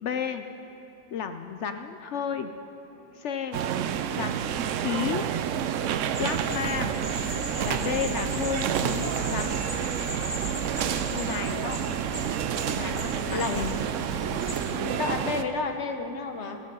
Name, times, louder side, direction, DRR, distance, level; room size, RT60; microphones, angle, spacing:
voice 1, 0.0-0.4 1.1-2.5 3.1-3.6 4.1-5.3 6.2-6.9 7.6-9.6 11.1-11.8 12.7-13.7, left 8 dB, 70° left, 8 dB, 0.7 m, -32 dB
sound 1, 2.2-3.1 3.4-8.1 8.4-13.1 13.4-16.0, right 1 dB, 5° left, 3.3 m, -56 dB
sound 2, 3.5-15.4, right 9 dB, 70° right, 0.7 m, -29 dB
sound 3, 6.1-14.5, equal, 10° right, 1.7 m, -37 dB
voice 2, 13.3-13.7 14.7-16.6, left 4 dB, 50° left, 6 dB, 1.1 m, -31 dB
15.5 x 12.0 x 5.4 m, 2.9 s
omnidirectional pair, 1.7 m